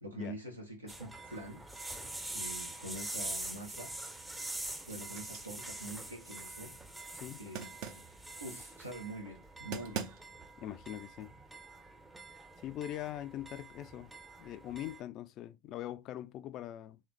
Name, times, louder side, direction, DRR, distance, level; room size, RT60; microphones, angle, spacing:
voice 1, 0.0-2.1 2.3-3.9 4.9-6.8 7.4-8.1 8.4-10.1, right 1 dB, 90° right, 1.1 m, -45 dB
sound 1, 0.9-15.0, right 1 dB, 10° right, 0.6 m, -45 dB
sound 2, 3.2-3.9 4.3-6.5 7.5-8.2 9.4-9.5 9.7-10.5, right 7 dB, 55° right, 0.6 m, -44 dB
voice 2, 10.6-11.3 12.6-14.1 14.4-17.0, left 12 dB, 45° left, 0.4 m, -42 dB
3.8 x 3.1 x 3.2 m
figure-of-eight pair, 80°, 0 cm